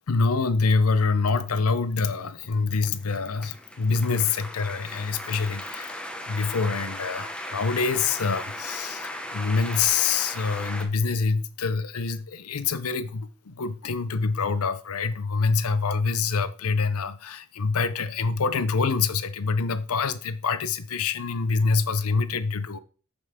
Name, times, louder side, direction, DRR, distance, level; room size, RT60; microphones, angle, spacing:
voice 1, 0.1-6.0 6.2-22.8, left 4 dB, 85° left, 0.7 m, -26 dB
sound 1, 1.6-10.9, left 1 dB, 5° left, 1.0 m, -37 dB
7.0 x 6.8 x 3.7 m
head